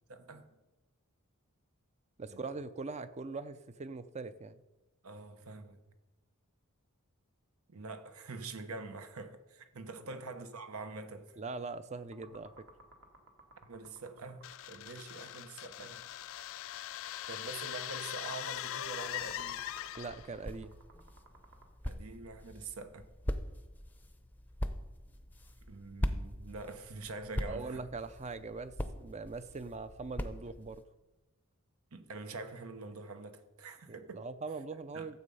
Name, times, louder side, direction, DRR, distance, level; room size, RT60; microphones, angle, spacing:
voice 1, 0.1-0.5 2.3-2.4 5.0-5.8 7.7-11.4 13.6-16.0 17.3-19.6 21.8-23.1 25.7-27.8 31.9-34.3 34.9-35.1, right 3 dB, 80° right, 1.0 m, -45 dB
voice 2, 2.2-4.6 10.0-10.2 11.4-12.7 20.0-20.8 27.4-30.8 33.9-35.2, right 4 dB, 30° right, 0.5 m, -42 dB
sound 1, 12.1-21.7, right 3 dB, 60° right, 1.7 m, -57 dB
sound 2, 14.4-20.3, left 13 dB, 65° left, 0.3 m, -41 dB
sound 3, 19.9-30.8, equal, 10° left, 0.6 m, -41 dB
13.0 x 7.6 x 5.5 m
head